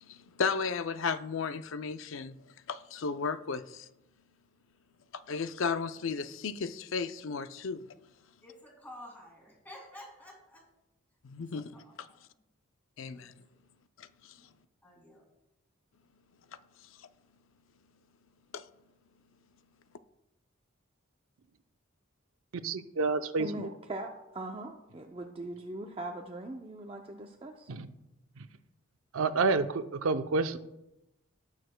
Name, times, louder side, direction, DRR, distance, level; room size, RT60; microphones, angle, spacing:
voice 1, 0.0-2.4 2.7-3.9 5.3-7.8 11.2-11.7 12.0-12.1 13.0-13.3 14.0-14.1 18.5-18.6, left 5 dB, 70° left, 0.5 m, -34 dB
voice 2, 8.4-10.6 11.5-11.6 12.0-12.2 13.1-13.2 14.4-14.5 14.8-15.2, left 1 dB, 10° left, 2.2 m, -50 dB
voice 3, 22.6-23.7 27.7-27.9 28.4-28.5 29.1-30.6, right 4 dB, 85° right, 0.6 m, -29 dB
voice 4, 23.4-27.7, right 1 dB, 25° right, 0.5 m, -41 dB
18.5 x 6.5 x 2.2 m
head